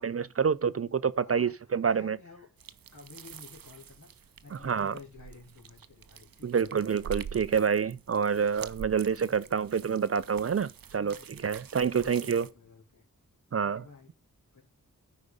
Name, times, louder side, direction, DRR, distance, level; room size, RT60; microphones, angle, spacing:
voice 1, 0.0-2.2 4.5-5.0 6.4-12.5 13.5-13.8, right 6 dB, 45° right, 0.4 m, -28 dB
voice 2, 1.2-1.6 1.9-2.5 2.9-6.7 9.3-9.6 11.0-11.5 11.9-13.0 13.6-14.1 14.5-14.6, left 4 dB, 60° left, 3.2 m, -52 dB
sound 1, 2.6-12.5, right 8 dB, 85° right, 0.6 m, -46 dB
9.6 x 5.1 x 5.3 m
wide cardioid pair, 50°, 34 cm